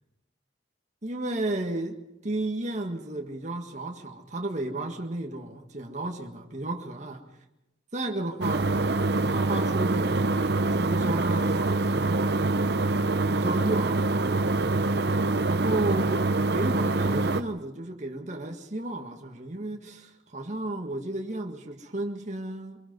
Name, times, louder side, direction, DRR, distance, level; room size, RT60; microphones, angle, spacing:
voice 1, 1.0-2.0 2.2-7.2 7.9-8.7 9.2-10.4 10.7-12.8 13.3-14.4 15.4-22.8, right 2 dB, 40° right, 1.7 m, -33 dB
sound 1, 8.4-17.4, right 3 dB, 65° right, 0.8 m, -25 dB
24.5 x 22.0 x 5.4 m
head